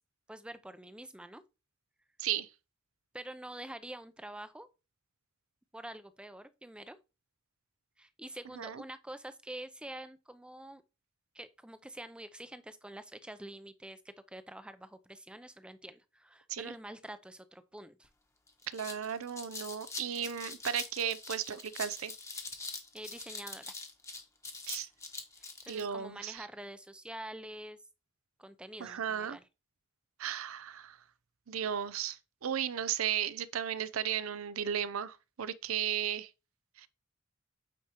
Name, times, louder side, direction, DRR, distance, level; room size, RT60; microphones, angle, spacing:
voice 1, 0.3-1.4 3.1-4.7 5.7-7.0 8.0-10.8 11.3-18.1 22.7-23.7 25.6-27.8 28.4-29.4, right 1 dB, 5° right, 0.5 m, -46 dB
sound 1, 18.0-18.1 18.5-25.8, left 3 dB, 15° left, 1.0 m, -43 dB
voice 2, 18.7-22.1 24.7-24.9 25.7-26.5 28.8-29.4 30.2-31.0 31.5-36.3 36.8-36.9, right 9 dB, 85° right, 0.5 m, -35 dB
8.5 x 4.8 x 2.9 m
head